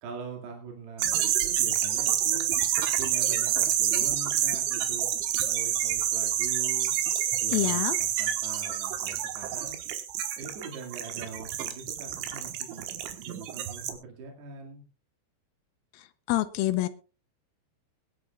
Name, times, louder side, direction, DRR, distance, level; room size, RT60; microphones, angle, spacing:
voice 1, 0.0-2.5 3.0-5.1 5.4-7.0 7.4-9.8 10.3-12.9 13.2-14.8, right 4 dB, 70° right, 1 dB, 4.2 m, -42 dB
sound 1, 1.0-13.9, right 10 dB, 90° right, 3.6 m, -28 dB
voice 2, 7.5-8.0 16.3-16.9, left 15 dB, 85° left, 10 dB, 2.1 m, -26 dB
22.5 x 11.0 x 2.3 m, 0.32 s
omnidirectional pair, 5.2 m